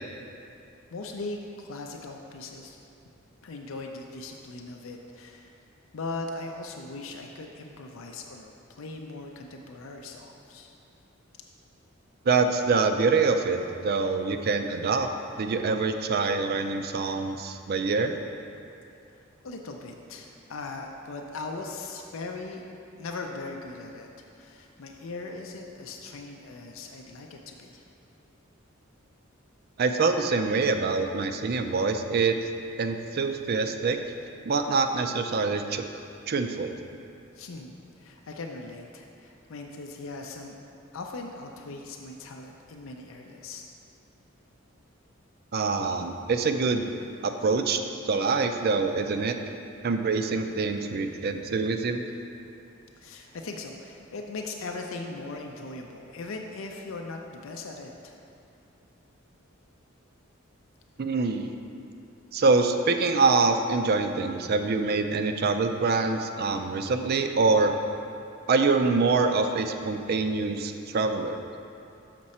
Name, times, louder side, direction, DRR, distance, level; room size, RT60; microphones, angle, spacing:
voice 1, 0.9-2.8 3.4-5.6 5.9-10.7 19.4-22.6 23.0-27.8 37.3-40.6 40.9-43.7 53.0-58.2, left 3 dB, 70° left, 2 dB, 0.5 m, -39 dB
voice 2, 12.3-15.1 15.4-18.1 29.8-32.3 32.8-34.0 34.4-35.8 36.3-36.7 45.5-46.8 47.2-47.8 48.0-49.4 49.8-52.0 61.0-61.5 62.3-67.7 68.5-71.4, right 4 dB, 50° right, 7 dB, 0.4 m, -25 dB
6.4 x 5.9 x 4.2 m, 2.6 s
head